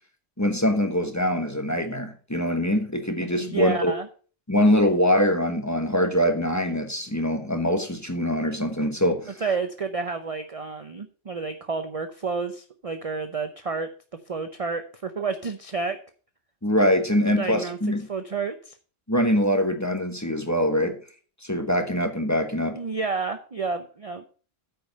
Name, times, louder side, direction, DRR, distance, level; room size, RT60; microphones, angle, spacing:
voice 1, 0.4-3.9 4.5-9.4 16.6-18.1 19.1-21.0 21.4-22.8, equal, 15° left, 1.2 m, -23 dB
voice 2, 3.3-4.1 9.4-13.9 14.3-16.0 17.4-17.8 18.1-18.7 22.7-24.2, right 4 dB, 35° right, 0.6 m, -30 dB
9.1 x 5.2 x 6.5 m
omnidirectional pair, 1.3 m